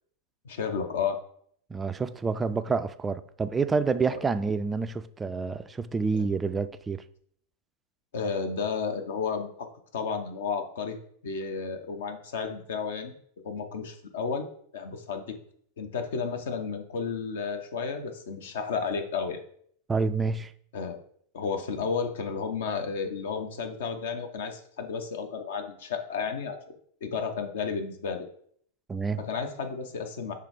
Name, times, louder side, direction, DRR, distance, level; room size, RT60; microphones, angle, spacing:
voice 1, 0.4-1.2 6.1-6.2 8.1-9.7 9.9-11.0 11.2-13.1 13.4-14.5 14.7-15.4 15.8-19.4 20.7-21.0 21.3-26.6 27.0-28.3 29.2-30.3, left 5 dB, 60° left, 0.8 m, -32 dB
voice 2, 1.7-7.0 19.9-20.5 28.9-29.2, right 4 dB, 15° right, 0.3 m, -28 dB
5.9 x 3.3 x 4.9 m
figure-of-eight pair, 90°, 0 cm